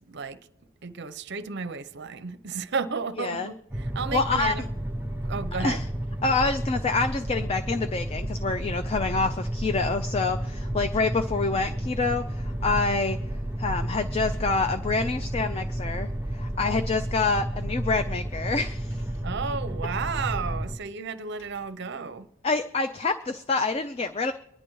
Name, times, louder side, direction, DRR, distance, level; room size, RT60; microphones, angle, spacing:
voice 1, 0.1-0.4 0.8-4.7 5.2-5.8 19.2-22.3, right 5 dB, 55° right, 0.6 m, -33 dB
voice 2, 3.2-3.5 4.1-4.6 5.6-5.8 6.2-13.2 13.6-19.0 22.4-24.3, left 3 dB, 30° left, 0.4 m, -27 dB
sound 1, 3.7-20.8, right 1 dB, 10° right, 0.6 m, -31 dB
Car, 14.2-14.8 15.9-16.0 16.7-17.3 18.6-19.3 21.1-21.9, right 1 dB, 65° left, 6.3 m, -53 dB
24.0 x 10.0 x 3.1 m
head